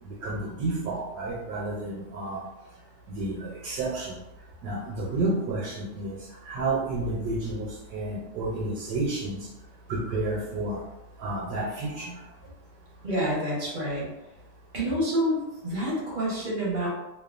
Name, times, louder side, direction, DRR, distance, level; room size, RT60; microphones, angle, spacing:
voice 1, 0.0-2.4 3.1-4.2 4.6-6.2 6.4-9.5 9.9-10.8 11.2-12.2, right 2 dB, 75° right, -3 dB, 1.1 m, -30 dB
voice 2, 13.0-14.1 14.7-16.9, equal, 45° right, -6 dB, 0.6 m, -28 dB
2.9 x 2.2 x 2.3 m, 0.97 s
omnidirectional pair, 1.9 m